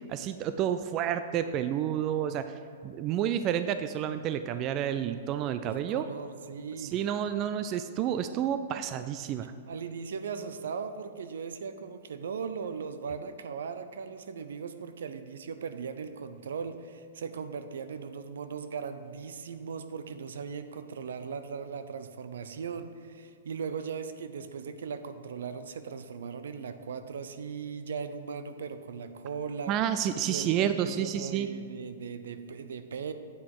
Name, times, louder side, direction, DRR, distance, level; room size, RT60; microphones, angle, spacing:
voice 1, 0.1-2.4 2.8-6.0 6.8-9.5 29.7-31.5, right 10 dB, 35° right, 10 dB, 0.3 m, -30 dB
voice 2, 5.6-7.0 9.7-29.8 30.2-33.1, right 6 dB, 80° right, 10 dB, 0.6 m, -38 dB
8.4 x 5.8 x 4.8 m, 2.4 s
hypercardioid pair, 135°, 0 cm